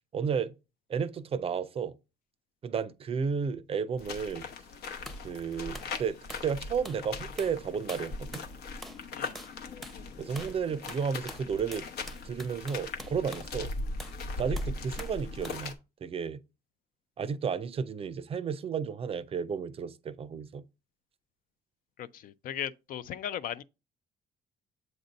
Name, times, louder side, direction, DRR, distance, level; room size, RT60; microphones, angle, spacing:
voice 1, 0.1-0.5 0.9-1.9 2.6-4.5 5.2-6.2 6.4-8.4 10.2-11.9 12.2-13.7 14.4-15.8 16.0-16.4 17.2-20.6, right 6 dB, 35° right, 0.5 m, -32 dB
sound 1, 4.0-15.7, left 3 dB, 70° left, 0.9 m, -39 dB
sound 2, 5.1-5.2 5.7-5.9 6.3-6.5 6.8-7.0 7.4-7.6 7.9-8.5 8.8-9.1 9.3-9.6 9.8-10.0 10.4-10.6 10.9-13.5 14.0-14.2 14.6-15.2 15.4-15.7, equal, ahead, 0.7 m, -46 dB
voice 2, 22.0-23.6, left 10 dB, 55° left, 0.4 m, -37 dB
7.8 x 2.6 x 5.1 m
cardioid pair, 110°, 17 cm